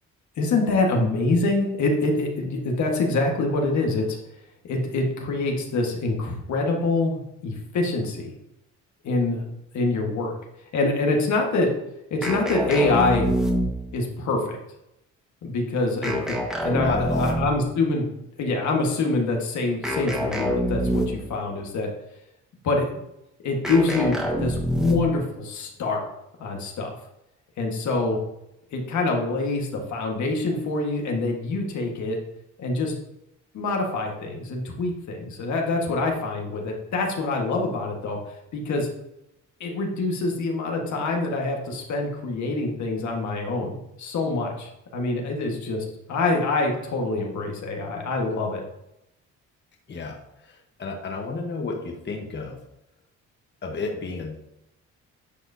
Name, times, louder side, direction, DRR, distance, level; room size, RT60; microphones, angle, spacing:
voice 1, 0.4-4.2 4.6-8.3 9.0-10.3 10.7-11.7 12.1-13.3 13.9-14.6 15.4-16.9 17.2-18.0 18.4-21.9 22.6-23.0 23.4-26.1 26.4-26.9 27.6-28.2 28.7-32.2 32.6-32.9 33.5-38.2 38.5-38.9 39.6-43.7 44.0-48.6, left 3 dB, 70° left, 1 dB, 1.6 m, -25 dB
sound 1, 12.2-14.0 16.0-17.7 19.8-21.4 23.6-25.2, equal, ahead, 1.4 m, -26 dB
voice 2, 16.8-17.3 49.9-52.6 53.6-54.4, left 3 dB, 35° left, 1 dB, 1.2 m, -31 dB
10.0 x 4.9 x 2.7 m, 0.85 s
cardioid pair, 90°, 30 cm